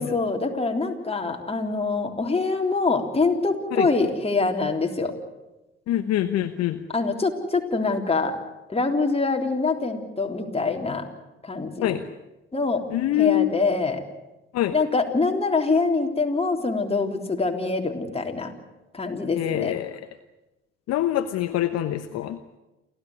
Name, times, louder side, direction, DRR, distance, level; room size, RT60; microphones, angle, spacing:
voice 1, 0.0-5.2 6.9-8.4 8.7-11.1 11.4-12.0 12.5-12.8 13.1-14.0 14.7-18.5 18.9-19.8, left 3 dB, 20° left, 3 dB, 3.7 m, -24 dB
voice 2, 5.9-6.8 11.8-12.0 12.9-13.5 14.5-14.7 19.3-20.1 20.9-22.4, left 13 dB, 55° left, 10 dB, 1.1 m, -24 dB
29.0 x 13.5 x 9.6 m, 1.0 s
hypercardioid pair, 55°, 31 cm